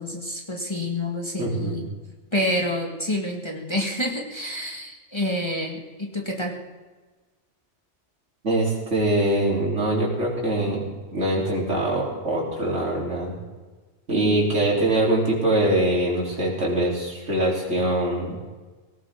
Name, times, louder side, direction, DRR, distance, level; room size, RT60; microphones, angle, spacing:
voice 1, 0.0-1.9 2.3-6.6 14.1-14.4, left 1 dB, 25° left, 0 dB, 1.9 m, -28 dB
voice 2, 1.4-1.8 8.4-10.8 11.1-13.4 14.1-18.3, right 1 dB, 75° right, -4 dB, 4.0 m, -23 dB
18.0 x 17.5 x 3.7 m, 1.3 s
omnidirectional pair, 1.2 m